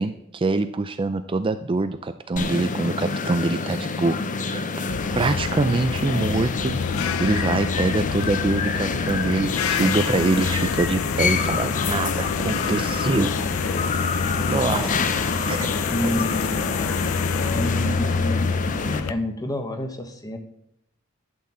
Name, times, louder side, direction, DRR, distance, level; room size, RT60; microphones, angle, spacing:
voice 1, 0.0-4.7 5.1-13.5 14.0-15.1 15.5-15.7 16.0-16.2, right 3 dB, 25° right, 11 dB, 0.4 m, -25 dB
sound 1, 2.4-19.0, left 4 dB, 40° left, 0.7 m, -27 dB
sound 2, 4.9-19.1, left 6 dB, 85° left, 0.5 m, -28 dB
voice 2, 14.6-15.5 15.9-17.0 17.5-18.5 18.8-20.4, equal, 20° left, 5 dB, 1.2 m, -30 dB
11.5 x 4.5 x 7.4 m, 0.77 s
head